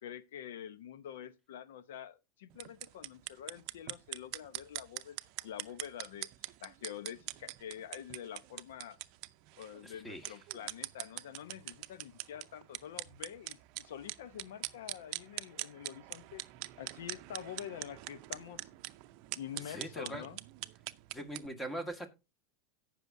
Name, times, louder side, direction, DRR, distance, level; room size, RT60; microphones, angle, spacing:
voice 1, 0.0-5.2 5.4-6.3 6.6-9.0 9.6-16.5 16.8-18.7 19.3-20.4, left 10 dB, 85° left, 0.9 m, -46 dB
sound 1, 2.5-21.5, right 19 dB, 55° right, 0.6 m, -44 dB
voice 2, 9.8-10.4 19.5-20.3 21.1-22.1, right 1 dB, 10° left, 1.8 m, -42 dB
17.5 x 6.1 x 2.7 m
supercardioid pair, 135°, 0 cm